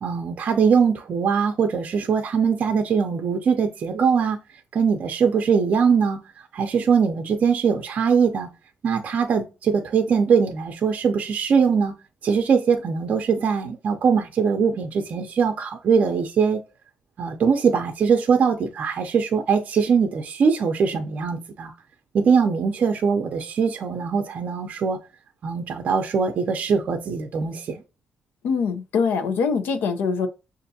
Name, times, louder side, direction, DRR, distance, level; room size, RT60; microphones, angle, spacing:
voice 1, 0.0-4.4 4.7-6.2 6.5-8.5 8.8-11.9 12.2-16.6 17.2-21.7 22.1-25.0 25.4-27.8, right 6 dB, 45° right, 0.5 m, -21 dB
voice 2, 28.4-30.3, left 5 dB, 90° left, 0.6 m, -23 dB
6.6 x 2.5 x 2.7 m
cardioid pair, 145°, 3 cm